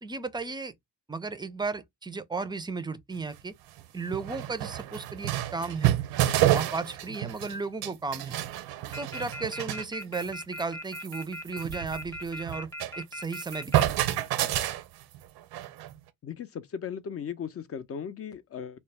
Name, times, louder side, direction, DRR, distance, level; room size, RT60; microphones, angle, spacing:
voice 1, 0.0-0.7 1.1-3.5 3.9-5.9 6.5-8.4 9.0-12.7 13.0-13.9 14.3-14.5, right 4 dB, 10° right, 0.4 m, -35 dB
sound 1, 3.2-3.3 3.8-3.9 4.1-7.6 7.8-9.9 10.1-10.3 10.6-10.7 10.9-13.0 13.2-15.9, right 13 dB, 80° right, 0.5 m, -29 dB
sound 2, 8.9-13.8, equal, 5° left, 0.8 m, -38 dB
voice 2, 16.2-18.8, left 7 dB, 40° left, 0.5 m, -37 dB
2.2 x 2.1 x 3.3 m
supercardioid pair, 60°, 37 cm